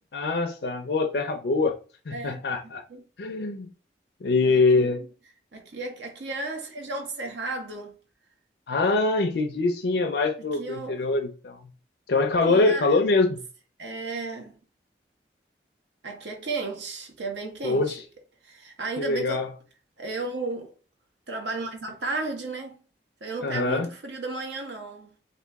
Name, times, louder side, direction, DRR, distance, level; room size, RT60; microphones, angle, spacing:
voice 1, 0.1-1.8 2.1-2.8 3.2-3.7 4.2-5.0 8.7-11.6 12.1-13.4 17.6-18.0 19.0-19.5 23.4-23.9, left 3 dB, 65° left, 0.5 m, -24 dB
voice 2, 2.1-3.0 4.4-5.1 5.5-8.0 10.5-11.1 12.5-13.0 13.8-14.6 16.0-18.0 18.4-19.5 20.0-20.7 21.3-22.8 23.2-25.2, right 3 dB, 80° right, 1.0 m, -34 dB
2.9 x 2.9 x 3.4 m
head